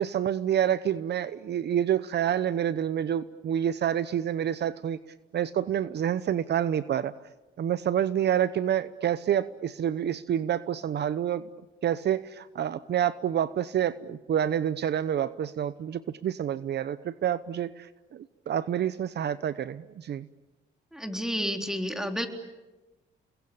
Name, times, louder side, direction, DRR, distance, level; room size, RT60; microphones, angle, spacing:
voice 1, 0.0-5.0 5.3-7.1 7.6-11.4 11.8-20.3, right 10 dB, 60° right, 14 dB, 0.9 m, -28 dB
voice 2, 20.9-22.3, equal, ahead, 4 dB, 3.7 m, -30 dB
30.0 x 21.5 x 8.7 m, 1.1 s
cardioid pair, 90°, 20 cm